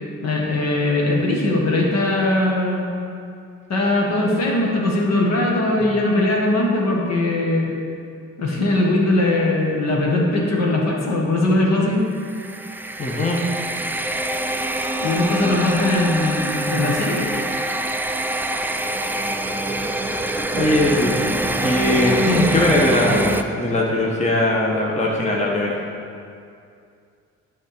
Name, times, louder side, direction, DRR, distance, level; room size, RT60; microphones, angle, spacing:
voice 1, 0.2-3.0 3.7-7.8 8.4-12.0 15.0-17.3, left 2 dB, 60° left, -2 dB, 1.6 m, -20 dB
sound 1, 12.2-23.4, right 2 dB, 5° right, 0.3 m, -25 dB
voice 2, 13.0-13.4 20.5-21.3 21.6-25.8, left 1 dB, 25° left, -3 dB, 1.1 m, -20 dB
8.8 x 3.6 x 6.6 m, 2.4 s
cardioid pair, 90°, 30 cm